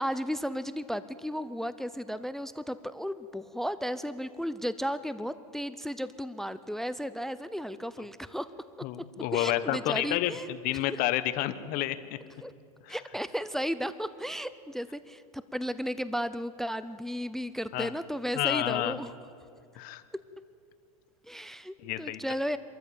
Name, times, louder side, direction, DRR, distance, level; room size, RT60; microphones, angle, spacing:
voice 1, 0.0-8.5 9.3-10.5 10.9-11.0 12.4-12.5 12.9-19.1 21.2-22.6, equal, ahead, 14 dB, 0.5 m, -34 dB
voice 2, 8.8-12.2 12.9-13.0 17.7-17.9 18.3-19.0 19.7-20.0 21.8-22.2, left 14 dB, 50° left, 13 dB, 1.2 m, -30 dB
25.5 x 14.0 x 8.6 m, 2.3 s
supercardioid pair, 120°, 19 cm